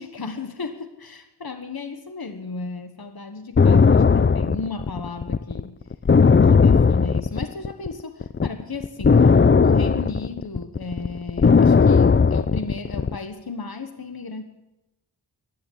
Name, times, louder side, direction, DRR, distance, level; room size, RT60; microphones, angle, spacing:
voice 1, 0.0-5.8 6.4-14.4, left 3 dB, 60° left, 7 dB, 1.4 m, -34 dB
sound 1, 3.6-7.9 8.2-13.2, left 5 dB, 30° left, 0.4 m, -16 dB
16.0 x 10.0 x 8.6 m, 0.97 s
wide cardioid pair, 60°, 41 cm